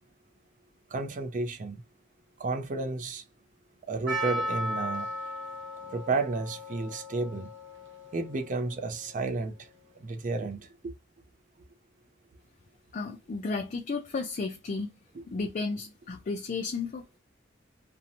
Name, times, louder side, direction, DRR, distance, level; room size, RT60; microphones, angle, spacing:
voice 1, 0.9-1.8 2.4-3.2 3.9-5.1 5.9-7.5 8.1-9.7 10.0-10.9, right 3 dB, 40° right, 0.4 m, -32 dB
Percussion, 4.1-9.0, equal, 65° right, 0.8 m, -36 dB
voice 2, 12.9-14.9 15.3-17.2, left 4 dB, 40° left, 0.4 m, -33 dB
2.6 x 2.1 x 2.8 m
head